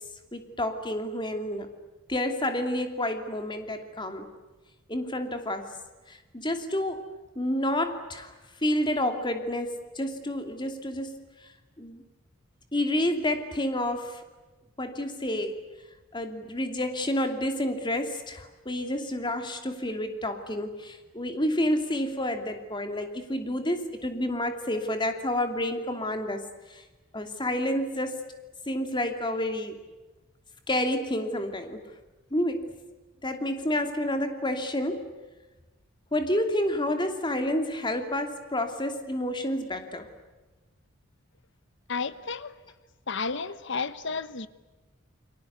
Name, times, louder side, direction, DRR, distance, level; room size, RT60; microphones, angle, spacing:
voice 1, 0.3-1.7 2.1-4.3 4.9-5.7 6.1-7.1 7.4-8.3 8.6-11.2 11.8-12.0 12.7-14.2 14.8-15.5 16.1-26.4 26.7-26.8 27.1-28.2 28.7-29.7 30.7-31.8 32.3-32.7 33.2-35.1 36.1-40.1, left 1 dB, 20° left, 2.8 m, -29 dB
voice 2, 41.9-42.5 43.1-44.5, left 4 dB, 60° left, 1.2 m, -32 dB
30.0 x 23.0 x 8.3 m
head